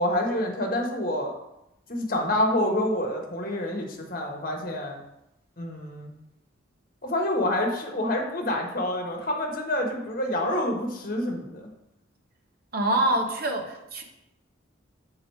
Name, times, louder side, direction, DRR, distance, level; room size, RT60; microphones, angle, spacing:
voice 1, 0.0-1.3 1.9-5.0 5.6-6.1 7.0-11.6, left 1 dB, 45° left, 1 dB, 1.2 m, -27 dB
voice 2, 12.7-14.0, right 1 dB, 50° right, 3 dB, 1.0 m, -25 dB
6.7 x 3.8 x 4.7 m, 0.87 s
head